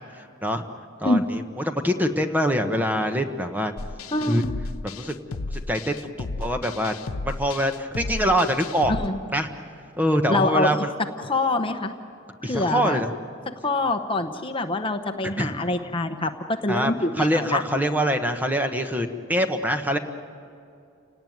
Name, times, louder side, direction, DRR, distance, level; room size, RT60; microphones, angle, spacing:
voice 1, 1.0-3.7 4.2-4.4 4.8-5.1 5.7-6.9 7.2-8.9 9.3-9.5 10.0-10.9 12.4-13.1 15.4-15.5 16.7-20.0, equal, 10° right, 6 dB, 1.2 m, -24 dB
sound 1, 3.8-9.1, left 3 dB, 85° left, 0.8 m, -33 dB
voice 2, 4.1-4.5 8.9-9.2 10.3-10.8 11.2-11.9 12.4-13.0 13.5-17.6, left 2 dB, 25° left, 7 dB, 0.9 m, -25 dB
29.5 x 18.5 x 9.3 m, 2.5 s
head